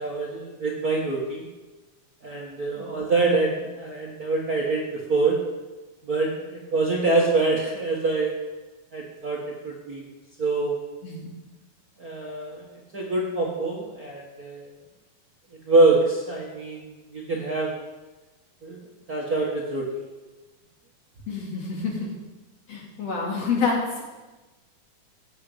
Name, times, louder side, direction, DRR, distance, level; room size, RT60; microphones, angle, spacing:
voice 1, 0.0-1.4 2.2-5.4 6.1-8.4 8.9-9.4 9.6-10.0 10.4-10.7 12.0-12.6 12.9-14.7 15.7-17.7 18.6-18.8 19.1-19.8, right 3 dB, 35° right, -3 dB, 1.7 m, -25 dB
voice 2, 21.3-22.1 22.7-24.0, left 4 dB, 55° left, -2 dB, 3.7 m, -28 dB
15.0 x 6.6 x 8.0 m, 1.2 s
omnidirectional pair, 3.6 m